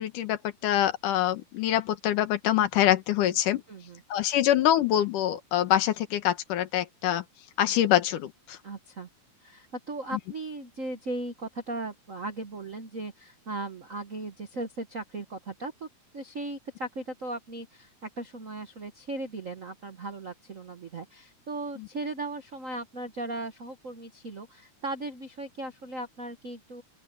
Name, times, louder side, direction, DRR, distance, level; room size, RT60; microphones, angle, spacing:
voice 1, 0.0-3.6 4.1-7.2 7.6-8.6, left 12 dB, 85° left, 2.8 m, -25 dB
voice 2, 3.7-4.0 8.6-9.1 9.4-15.9 16.1-26.8, right 2 dB, 60° right, 0.8 m, -37 dB
open air
omnidirectional pair, 3.6 m